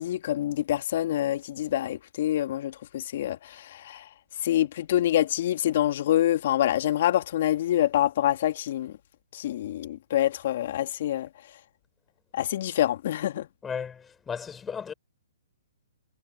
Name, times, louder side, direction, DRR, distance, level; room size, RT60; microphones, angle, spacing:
voice 1, 0.0-4.1 4.4-8.9 9.3-11.3 12.3-13.5, left 12 dB, 55° left, 1.9 m, -26 dB
voice 2, 13.6-14.9, left 6 dB, 15° left, 4.9 m, -35 dB
hypercardioid pair, 130°, 0 cm